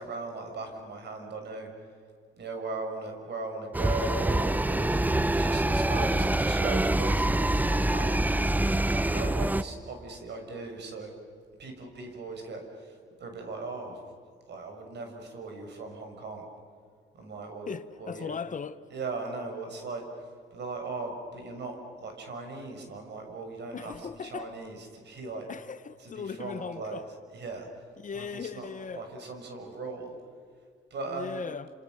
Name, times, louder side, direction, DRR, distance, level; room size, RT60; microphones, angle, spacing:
voice 1, 0.0-1.7 2.4-5.0 5.4-8.2 9.1-11.1 11.6-12.9 13.2-14.0 14.5-16.4 17.1-18.4 18.9-20.0 20.5-25.5 26.0-27.7 28.1-30.1 30.9-31.4, right 3 dB, 60° right, 6.6 m, -38 dB
sound 1, 3.7-9.6, right 1 dB, 10° right, 0.7 m, -25 dB
voice 2, 17.7-18.8 23.7-24.5 25.5-27.1 28.0-29.0 31.0-31.7, left 6 dB, 40° left, 1.0 m, -38 dB
29.5 x 28.0 x 6.6 m
cardioid pair, 90°, 20 cm